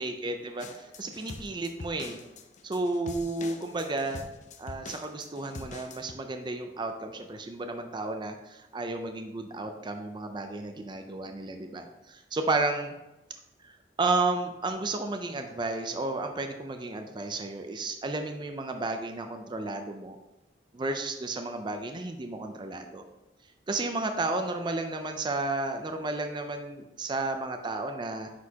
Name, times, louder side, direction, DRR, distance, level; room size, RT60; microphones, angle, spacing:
voice 1, 0.0-2.2 2.6-4.3 4.6-12.9 13.6-20.2 20.7-23.0 23.7-28.3, right 2 dB, 25° right, 5 dB, 0.4 m, -32 dB
sound 1, 0.6-6.1, left 3 dB, 40° left, 0.5 m, -44 dB
9.2 x 4.3 x 2.8 m, 0.99 s
head